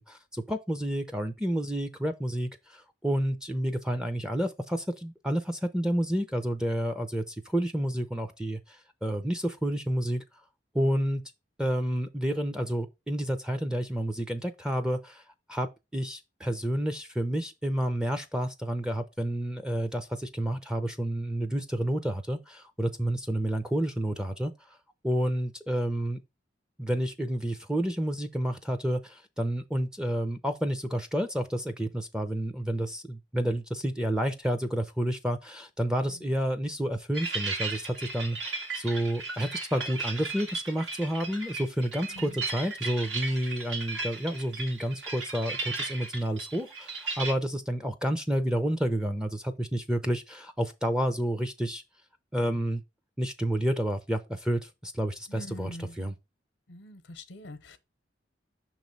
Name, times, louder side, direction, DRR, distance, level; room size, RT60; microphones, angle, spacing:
voice 1, 0.0-10.2 10.7-11.2 11.6-15.2 15.5-24.5 25.0-26.2 26.8-51.8 52.3-52.8 53.2-56.1, right 1 dB, 5° right, 0.5 m, -30 dB
voice 2, 36.0-36.3 42.1-42.4 55.3-56.0 56.7-57.8, left 1 dB, 85° left, 0.8 m, -44 dB
sound 1, 37.1-47.3, right 3 dB, 80° right, 1.8 m, -36 dB
6.2 x 3.1 x 5.2 m
head